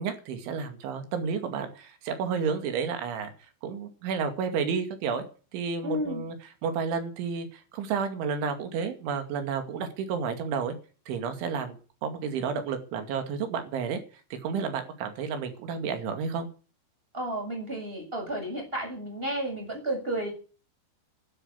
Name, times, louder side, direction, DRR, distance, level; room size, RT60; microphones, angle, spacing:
voice 1, 0.0-3.3 3.6-5.2 5.5-10.8 11.1-11.8 12.0-14.0 14.3-16.5, right 6 dB, 75° right, 7 dB, 4.7 m, -31 dB
voice 2, 5.8-6.3 17.1-20.3, right 1 dB, 10° right, 2 dB, 7.5 m, -32 dB
12.5 x 11.5 x 8.5 m, 0.37 s
omnidirectional pair, 5.5 m